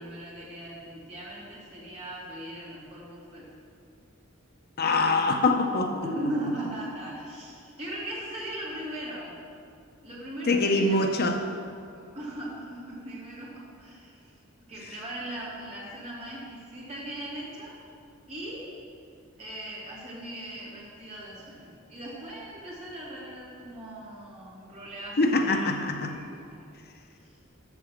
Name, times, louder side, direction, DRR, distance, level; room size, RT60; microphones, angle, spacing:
voice 1, 0.0-3.5 6.0-9.3 10.0-11.1 11.9-14.4 14.7-17.8 18.3-18.7 19.4-26.7, right 1 dB, 30° right, -6 dB, 2.9 m, -39 dB
voice 2, 4.8-6.1 10.5-11.4 25.2-26.1, left 2 dB, 50° left, 5 dB, 0.7 m, -24 dB
8.1 x 7.4 x 7.3 m, 2.4 s
head